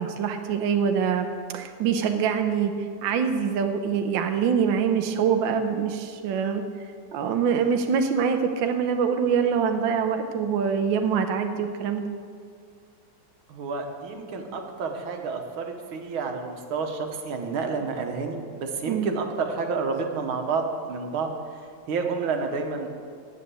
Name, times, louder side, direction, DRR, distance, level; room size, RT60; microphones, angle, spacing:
voice 1, 0.0-2.7 3.0-6.6 7.1-12.1 18.9-19.1, right 7 dB, 75° right, 5 dB, 1.5 m, -24 dB
voice 2, 13.5-21.6 21.9-22.9, right 4 dB, 90° right, 4 dB, 2.0 m, -30 dB
9.8 x 9.0 x 7.6 m, 2.2 s
omnidirectional pair, 2.2 m